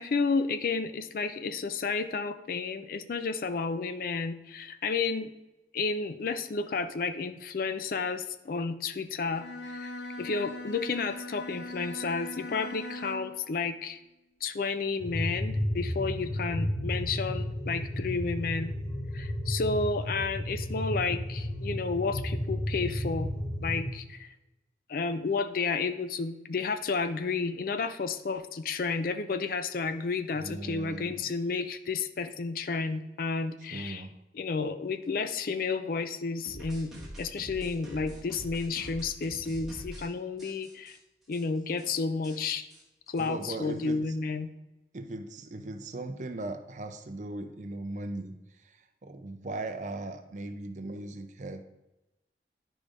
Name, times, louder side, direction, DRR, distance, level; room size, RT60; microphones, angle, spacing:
voice 1, 0.0-5.3 5.7-9.9 10.2-14.0 14.4-18.7 19.1-23.3 23.6-24.3 24.9-34.1 34.3-41.0 41.3-42.7 43.1-44.5, left 4 dB, 50° left, 11 dB, 0.4 m, -31 dB
Bowed string instrument, 9.3-13.4, left 1 dB, 85° left, 0.9 m, -40 dB
sound 1, 15.0-23.9, left 1 dB, 30° left, 1.7 m, -33 dB
voice 2, 30.3-31.3 33.7-34.1 43.2-44.0 44.9-51.6, right 2 dB, 45° right, 8 dB, 0.5 m, -38 dB
sound 2, 36.5-40.1 40.4-41.0 41.3-41.4 41.7-41.9 42.2-43.9, equal, ahead, 1.5 m, -45 dB
10.5 x 5.0 x 2.5 m, 0.98 s
head